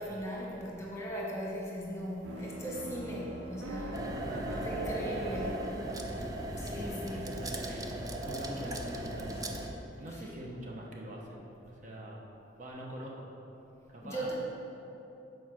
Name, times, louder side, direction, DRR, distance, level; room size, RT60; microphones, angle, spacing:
voice 1, 0.0-4.0 4.6-5.5 6.0-7.3 10.1-10.2 14.0-14.3, right 1 dB, 15° left, -4 dB, 1.3 m, -39 dB
sound 1, 2.2-8.3, right 1 dB, 90° right, 0.6 m, -44 dB
sound 2, 2.3-9.9, left 1 dB, 30° left, 0.5 m, -53 dB
sound 3, 3.9-9.7, right 1 dB, 20° right, 0.5 m, -37 dB
voice 2, 4.1-4.9 5.2-5.4 6.7-6.9 7.1-7.9 8.2-9.5 10.0-12.3 12.6-13.3 13.9-14.3, right 1 dB, 40° right, -2 dB, 0.8 m, -44 dB
7.2 x 4.6 x 5.9 m, 2.9 s
head